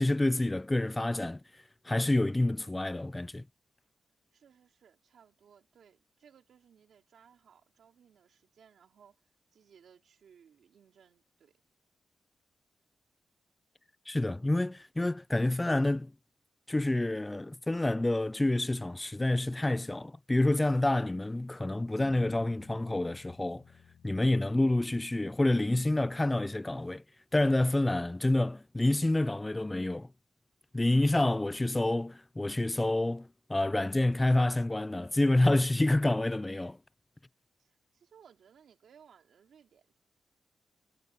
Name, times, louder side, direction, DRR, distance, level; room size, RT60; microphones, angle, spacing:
voice 1, 0.0-1.4 1.9-3.4 14.1-16.1 16.7-23.6 24.0-27.0 27.3-30.1 30.7-36.8, left 2 dB, 15° left, 0.3 m, -28 dB
voice 2, 4.3-11.5 27.6-28.0 37.6-40.0, right 7 dB, 80° right, 3.0 m, -61 dB
Bass guitar, 22.0-26.4, left 8 dB, 85° left, 7.7 m, -57 dB
cardioid pair, 100°, 0 cm